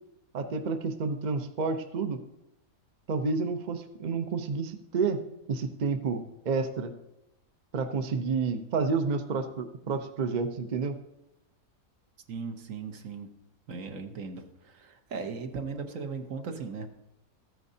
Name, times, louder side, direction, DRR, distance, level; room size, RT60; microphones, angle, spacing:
voice 1, 0.3-2.2 3.1-6.9 7.7-11.0, right 4 dB, 45° right, 7 dB, 0.6 m, -30 dB
voice 2, 12.3-13.3 13.7-17.0, right 5 dB, 65° right, 6 dB, 1.2 m, -38 dB
14.5 x 9.3 x 2.7 m, 0.87 s
omnidirectional pair, 1.5 m